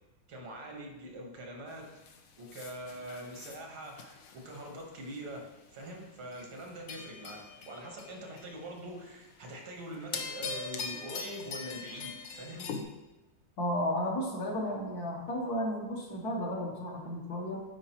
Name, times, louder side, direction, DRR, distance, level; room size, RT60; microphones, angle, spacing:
voice 1, 0.3-1.9 2.4-12.7, right 1 dB, 80° right, 1 dB, 2.0 m, -43 dB
sound 1, 1.7-5.4 5.8-6.0 6.3-8.8 9.1-9.6 9.9-12.8, left 5 dB, 75° left, 0.7 m, -42 dB
voice 2, 13.6-17.6, equal, 55° left, -1 dB, 1.3 m, -33 dB
8.9 x 4.6 x 2.9 m, 1.1 s
omnidirectional pair, 2.2 m